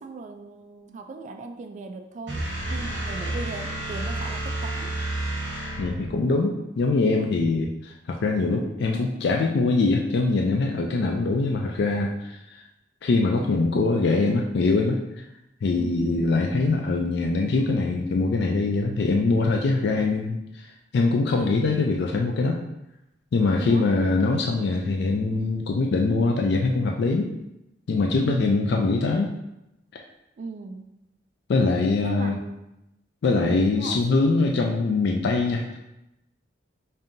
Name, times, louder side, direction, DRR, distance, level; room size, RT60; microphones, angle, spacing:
voice 1, 0.0-4.9 15.8-16.1 23.6-23.9 28.2-28.7 30.4-30.9 32.0-32.7 33.4-34.0, right 3 dB, 40° right, 6 dB, 0.3 m, -38 dB
sound 1, 2.3-6.2, right 1 dB, 80° right, 1.2 m, -30 dB
voice 2, 5.8-12.6 13.0-15.0 15.6-20.7 20.9-22.6 23.3-27.3 27.9-29.3 31.5-32.4 33.2-35.8, left 3 dB, 65° left, 2 dB, 0.4 m, -23 dB
5.2 x 2.7 x 2.6 m, 0.89 s
head